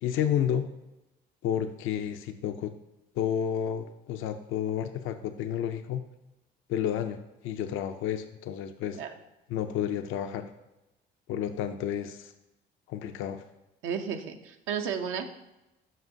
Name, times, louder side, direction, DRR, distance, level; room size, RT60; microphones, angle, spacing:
voice 1, 0.0-0.7 1.4-2.7 3.2-6.0 6.7-9.0 9.5-10.5 11.3-12.3 12.9-13.4, left 9 dB, 75° left, 8 dB, 0.4 m, -31 dB
voice 2, 13.8-15.4, right 7 dB, 80° right, 6 dB, 0.6 m, -33 dB
7.3 x 5.4 x 2.6 m, 0.95 s
supercardioid pair, 80°, 20 cm